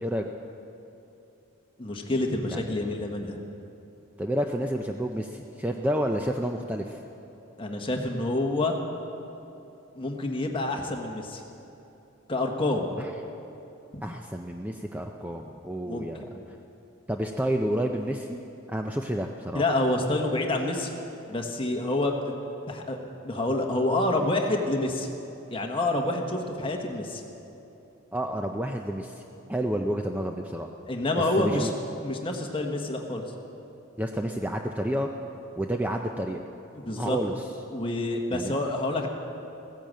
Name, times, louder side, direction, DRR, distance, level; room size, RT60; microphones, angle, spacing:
voice 1, 1.8-3.4 7.6-8.8 9.9-11.4 12.3-12.9 13.9-14.0 15.9-16.3 19.5-20.9 21.3-22.3 22.7-23.0 23.2-25.1 25.5-27.2 30.9-31.7 32.0-33.2 36.7-37.2 37.7-39.1, left 2 dB, 25° left, 2 dB, 1.3 m, -28 dB
voice 2, 4.2-7.0 13.0-13.1 14.0-16.2 17.1-18.4 18.7-19.6 28.1-29.2 29.5-30.7 31.4-31.7 34.0-35.1 35.6-36.4 37.0-37.4 38.3-38.5, right 1 dB, 5° right, 3 dB, 0.4 m, -30 dB
16.0 x 10.5 x 7.5 m, 2.9 s
head